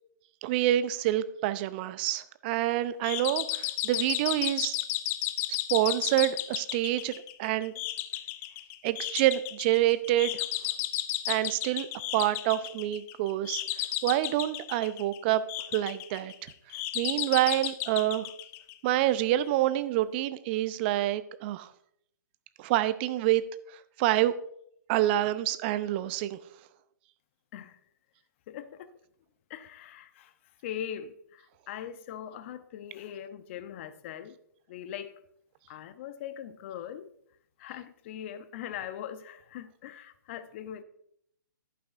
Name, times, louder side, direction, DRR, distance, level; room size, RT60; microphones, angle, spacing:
voice 1, 0.4-4.8 5.7-7.7 8.8-10.4 11.3-11.9 12.1-13.6 14.0-15.4 15.7-16.5 16.9-18.3 18.8-21.7 22.6-23.4 24.0-24.3 24.9-26.4, right 14 dB, 30° right, 0.6 m, -27 dB
sound 1, 3.0-19.1, left 15 dB, 20° left, 0.4 m, -34 dB
voice 2, 28.5-28.9 29.5-30.3 30.6-34.4 34.7-35.2 35.7-37.1 37.6-40.8, left 10 dB, 40° left, 0.7 m, -41 dB
11.0 x 9.2 x 2.5 m
hypercardioid pair, 135°, 11 cm